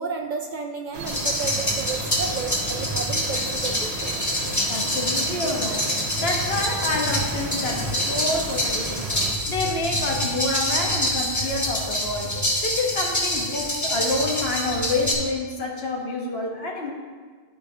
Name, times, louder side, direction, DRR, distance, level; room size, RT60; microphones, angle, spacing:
voice 1, 0.0-4.2, right 5 dB, 55° right, 2 dB, 0.6 m, -32 dB
sound 1, 0.9-9.4, right 4 dB, 80° right, 1.0 m, -35 dB
sound 2, 1.1-15.1, left 1 dB, 15° left, 1.0 m, -26 dB
voice 2, 4.7-12.4 12.6-16.9, left 2 dB, 70° left, 0 dB, 1.3 m, -28 dB
11.5 x 4.6 x 2.8 m, 1.5 s
omnidirectional pair, 1.1 m